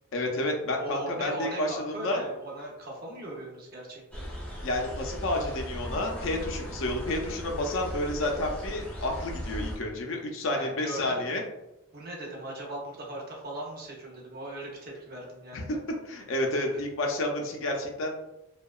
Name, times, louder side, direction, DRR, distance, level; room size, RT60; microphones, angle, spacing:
voice 1, 0.1-2.2 4.6-11.4 15.5-15.6 16.1-18.1, left 1 dB, 65° left, 1 dB, 0.5 m, -30 dB
voice 2, 0.8-4.2 10.5-11.3 11.9-15.8 16.7-16.8, right 1 dB, 45° right, -2 dB, 0.6 m, -39 dB
sound 1, 4.1-9.8, equal, 5° left, 0.3 m, -37 dB
2.7 x 2.2 x 2.3 m, 0.93 s
head